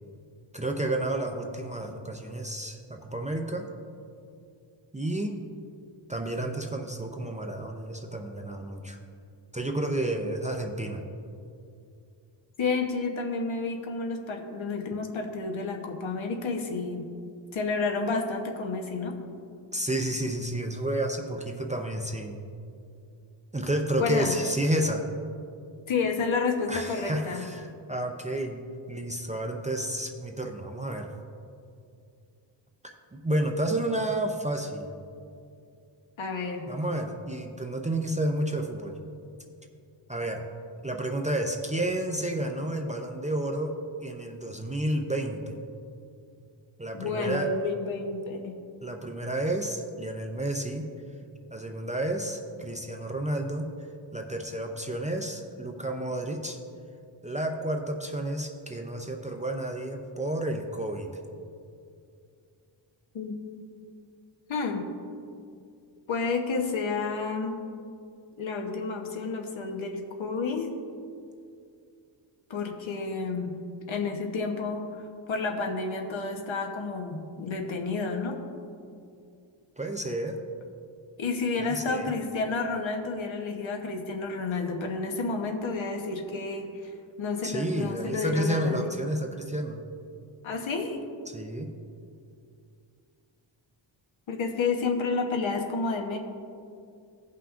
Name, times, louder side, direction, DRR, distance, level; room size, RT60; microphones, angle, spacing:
voice 1, 0.5-3.7 4.9-5.4 6.1-9.0 9.5-11.1 19.7-22.4 23.5-25.1 26.7-31.1 32.8-34.9 36.6-39.0 40.1-40.4 40.8-43.7 44.0-45.6 46.8-47.5 48.8-50.9 51.5-53.7 54.1-56.6 57.2-61.1 79.8-80.4 81.6-82.1 87.4-89.8 91.3-91.7, right 1 dB, 15° right, 2 dB, 0.4 m, -31 dB
voice 2, 12.6-17.1 17.5-19.2 24.0-24.4 25.9-27.5 36.2-36.7 46.9-48.6 63.1-63.3 64.5-64.9 66.1-67.6 68.4-70.7 72.5-73.5 73.9-75.0 75.3-78.4 81.2-86.9 87.2-88.8 90.4-91.0 94.3-96.2, left 4 dB, 70° left, 2 dB, 1.0 m, -30 dB
17.0 x 5.7 x 2.5 m, 2.5 s
wide cardioid pair, 145°, 48 cm